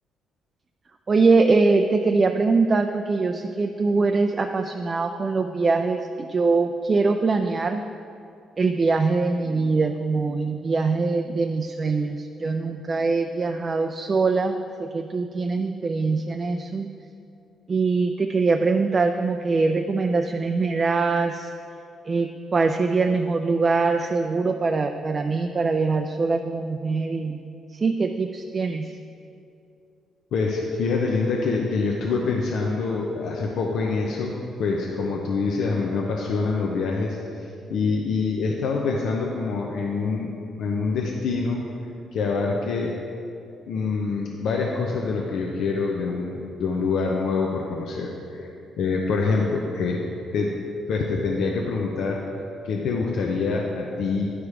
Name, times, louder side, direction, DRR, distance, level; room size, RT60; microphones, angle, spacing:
voice 1, 1.1-7.8 8.6-16.9 17.7-21.5 22.0-27.4 27.7-28.9, right 4 dB, 35° right, 5 dB, 0.4 m, -23 dB
voice 2, 30.3-40.3 40.6-41.7 42.1-42.9 43.7-48.5 48.8-50.6 50.9-52.3 52.6-54.3, left 4 dB, 75° left, -1 dB, 0.7 m, -25 dB
10.0 x 4.9 x 4.8 m, 2.6 s
cardioid pair, 90°, 0 cm